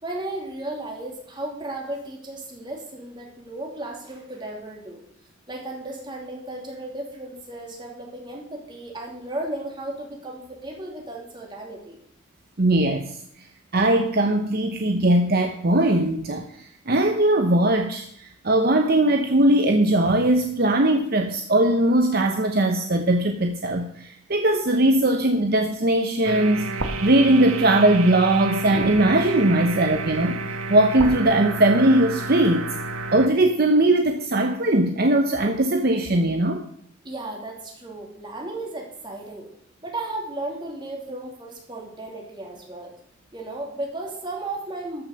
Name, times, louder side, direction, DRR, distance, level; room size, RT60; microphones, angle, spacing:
voice 1, 0.0-5.0 5.5-12.0 37.0-39.5 39.8-42.9 43.3-45.0, right 2 dB, 20° right, -1 dB, 2.9 m, -34 dB
voice 2, 12.6-13.2 13.7-30.4 30.7-32.7 33.1-36.6, right 1 dB, 50° right, 5 dB, 0.8 m, -20 dB
sound 1, 26.2-33.3, right 3 dB, 85° right, 1.6 m, -30 dB
13.5 x 6.4 x 6.7 m, 0.70 s
head